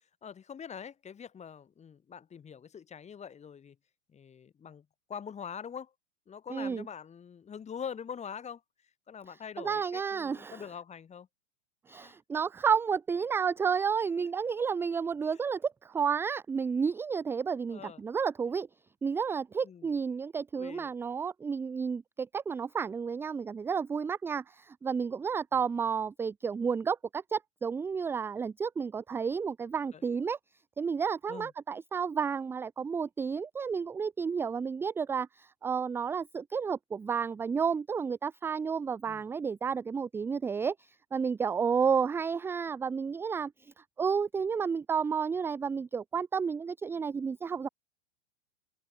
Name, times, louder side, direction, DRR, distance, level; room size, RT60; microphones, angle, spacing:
voice 1, 0.2-3.8 4.1-5.9 6.3-8.6 9.1-11.3 12.0-12.2 14.2-14.3 17.7-18.0 19.6-19.9 20.5-20.9 29.9-30.0 31.3-31.5 39.1-39.2, left 7 dB, 20° left, 5.2 m, -44 dB
voice 2, 6.5-6.8 9.6-10.6 11.9-18.7 19.0-30.4 30.8-43.5 44.0-47.7, right 6 dB, 5° right, 0.5 m, -31 dB
figure-of-eight pair, 105°, 37 cm